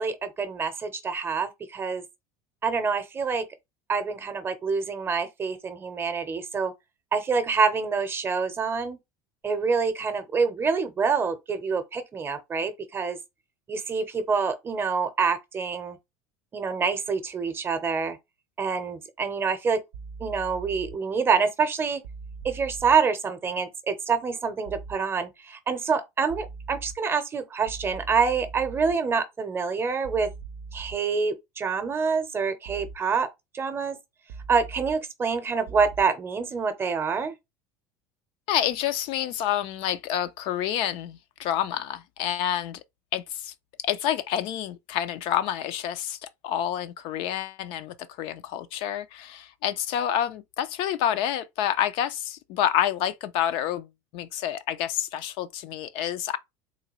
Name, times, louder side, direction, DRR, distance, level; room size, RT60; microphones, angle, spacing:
voice 1, 0.0-2.0 2.6-3.4 3.9-6.7 7.1-9.0 9.4-13.2 13.7-16.0 16.5-18.2 18.6-19.8 20.2-22.0 22.4-30.3 30.7-33.3 33.5-34.0 34.5-37.4, right 5 dB, 25° right, 0.7 m, -26 dB
sound 1, 19.9-20.9 22.0-23.0 24.7-25.0 26.3-27.0 27.7-28.9 30.0-31.0 32.7-33.0 34.3-35.0 35.7-36.0, right 4 dB, 80° right, 0.5 m, -40 dB
voice 2, 38.5-42.8 43.1-43.5 43.8-56.4, left 10 dB, 60° left, 0.4 m, -28 dB
3.7 x 2.2 x 3.0 m
supercardioid pair, 120°, 10 cm